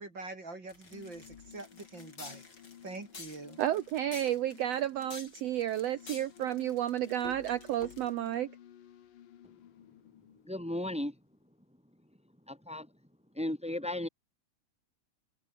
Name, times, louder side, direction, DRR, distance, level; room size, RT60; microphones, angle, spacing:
voice 1, 0.0-2.5 2.8-3.6, right 3 dB, 35° right, 4.5 m, -44 dB
sound 1, 0.7-11.1, left 10 dB, 90° left, 3.5 m, -55 dB
sound 2, 0.7-8.3, left 4 dB, 30° left, 4.4 m, -50 dB
voice 2, 3.6-8.5, right 12 dB, 75° right, 1.5 m, -31 dB
voice 3, 10.4-11.2 12.5-12.9 13.3-14.1, left 1 dB, 5° right, 1.4 m, -35 dB
open air
omnidirectional pair, 3.7 m